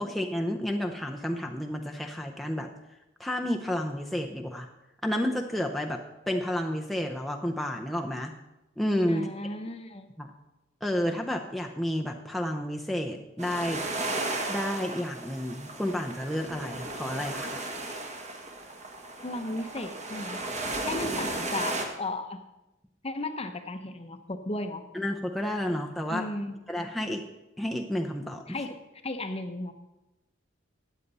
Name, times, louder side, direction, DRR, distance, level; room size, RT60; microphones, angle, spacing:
voice 1, 0.0-2.7 3.2-4.7 5.0-8.3 8.8-9.3 10.2-10.3 10.8-13.8 14.5-17.6 24.9-26.3 26.7-27.2 27.6-28.6, left 1 dB, ahead, 1 dB, 0.6 m, -31 dB
voice 2, 9.1-10.1 19.2-20.4 20.8-22.4 23.0-24.8 26.1-26.6 28.5-28.7 29.0-29.7, left 2 dB, 30° left, 8 dB, 0.8 m, -35 dB
sound 1, 13.4-21.9, right 2 dB, 35° right, 1.5 m, -35 dB
13.5 x 9.2 x 4.1 m, 0.98 s
head